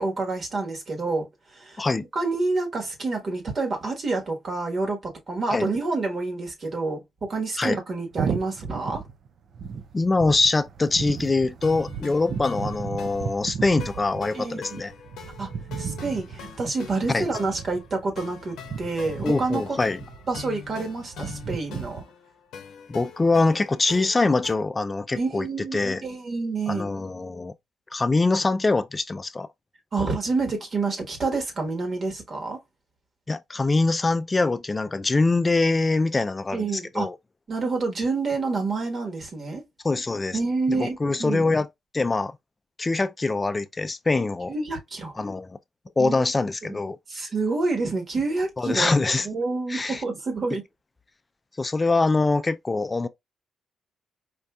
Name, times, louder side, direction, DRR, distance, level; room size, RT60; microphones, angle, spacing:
voice 1, 0.0-1.9 2.1-9.0 14.3-14.8 15.4-15.5 15.8-19.8 20.3-22.0 25.1-26.9 29.9-32.6 36.5-37.1 37.5-39.6 40.3-41.4 44.5-45.2 46.0-46.2 46.6-46.7 47.1-48.9 49.2-50.6, right 3 dB, 50° right, 1.4 m, -28 dB
sound 1, 8.1-22.0, right 6 dB, 65° right, 0.4 m, -35 dB
voice 2, 9.9-14.9 17.1-17.3 19.2-20.0 22.9-25.5 25.7-26.0 26.7-27.5 27.9-29.5 33.3-36.7 36.9-37.2 39.8-40.4 40.7-41.7 41.9-42.4 42.8-44.5 45.2-45.6 46.0-47.0 48.6-49.3 49.7-50.0 51.6-53.1, left 3 dB, 25° left, 0.4 m, -23 dB
sound 2, 11.6-24.5, left 6 dB, 90° left, 0.8 m, -43 dB
4.4 x 2.6 x 2.3 m
cardioid pair, 80°, 0 cm